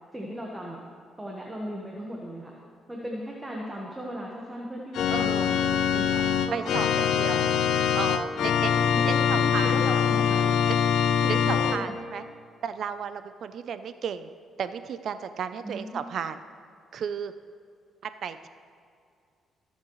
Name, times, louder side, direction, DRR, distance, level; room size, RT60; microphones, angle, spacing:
voice 1, 0.1-0.8 1.2-2.5 2.9-7.5 8.6-10.5 11.2-11.9 15.6-16.0, equal, 15° right, -2 dB, 1.4 m, -37 dB
Organ, 4.9-11.8, left 8 dB, 75° left, 0.5 m, -23 dB
voice 2, 5.1-5.5 6.5-7.4 7.9-8.7 9.0-9.7 10.7-12.2 12.6-14.3 14.6-16.4 16.9-17.3 18.0-18.5, right 7 dB, 65° right, 11 dB, 0.5 m, -34 dB
20.0 x 7.4 x 3.2 m, 2.4 s
cardioid pair, 90°, 0 cm